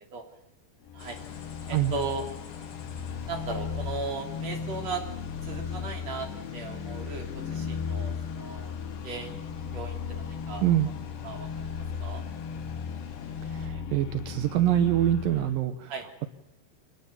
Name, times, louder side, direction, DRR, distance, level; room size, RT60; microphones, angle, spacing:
sound 1, 0.9-15.6, left 6 dB, 75° left, 3.3 m, -36 dB
sound 2, 1.0-13.7, left 5 dB, 50° left, 4.0 m, -50 dB
voice 1, 1.7-2.3 3.2-5.0 5.4-8.8 9.0-10.6 11.2-11.7 12.0-12.2 15.9-16.1, right 4 dB, 40° right, 3 dB, 4.1 m, -37 dB
voice 2, 13.4-15.9, right 12 dB, 70° right, 9 dB, 2.2 m, -25 dB
25.5 x 19.5 x 7.1 m, 0.88 s
omnidirectional pair, 5.1 m